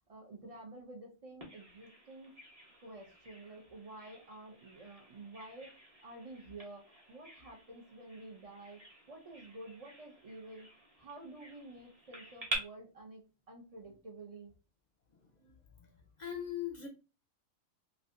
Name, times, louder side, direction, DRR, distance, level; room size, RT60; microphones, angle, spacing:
voice 1, 0.1-2.4 2.8-5.8 6.0-10.7 11.0-13.2 13.5-14.5, right 2 dB, 50° right, 0 dB, 0.4 m, -50 dB
Bird vocalization bird call bird song, 1.4-12.6, right 2 dB, 30° right, 1.0 m, -48 dB
voice 2, 16.2-16.9, left 10 dB, 45° left, 2 dB, 0.6 m, -39 dB
3.3 x 2.6 x 2.5 m, 0.31 s
omnidirectional pair, 1.4 m